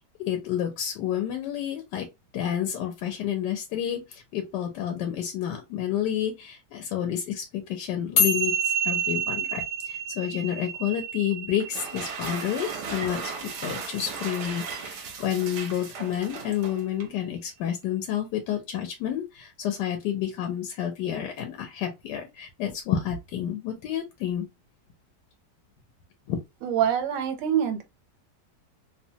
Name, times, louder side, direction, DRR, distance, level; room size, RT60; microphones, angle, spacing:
voice 1, 0.2-2.1 2.3-13.3 13.6-24.5 26.3-26.4, left 10 dB, 75° left, 1.2 m, -30 dB
sound 1, 8.2-14.7, right 1 dB, 50° left, 1.0 m, -29 dB
sound 2, 11.6-17.2, right 5 dB, 65° right, 0.7 m, -37 dB
voice 2, 26.6-27.8, right 9 dB, 90° right, 1.4 m, -25 dB
3.0 x 2.1 x 2.7 m
omnidirectional pair, 1.9 m